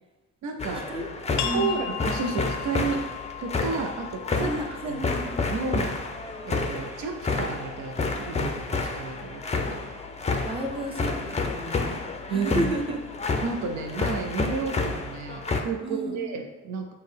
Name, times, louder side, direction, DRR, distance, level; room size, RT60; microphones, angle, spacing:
voice 1, 0.4-1.0 1.5-3.0 3.4-5.0 5.4-6.0 6.5-9.4 12.3-12.7 13.4-16.9, right 5 dB, 70° right, 4 dB, 0.6 m, -32 dB
sound 1, 0.6-15.6, left 3 dB, 20° left, 0.5 m, -30 dB
sound 2, 1.4-6.8, left 10 dB, 75° left, 0.5 m, -38 dB
voice 2, 1.4-2.0 4.3-5.3 9.7-9.8 10.4-13.0 15.8-16.3, right 1 dB, 20° right, 2 dB, 0.6 m, -32 dB
6.0 x 2.2 x 3.3 m, 1.1 s
cardioid pair, 90°, 30 cm